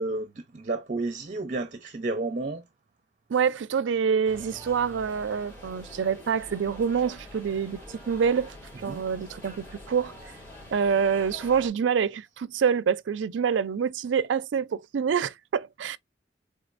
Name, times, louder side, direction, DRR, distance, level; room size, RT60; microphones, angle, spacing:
voice 1, 0.0-2.6 8.9-9.0, right 2 dB, 45° right, 0.6 m, -31 dB
voice 2, 3.3-8.6 8.8-10.1 10.7-16.0, right 6 dB, 90° right, 0.4 m, -26 dB
sound 1, 4.2-11.7, left 1 dB, 10° left, 3.0 m, -46 dB
4.2 x 3.7 x 2.4 m
head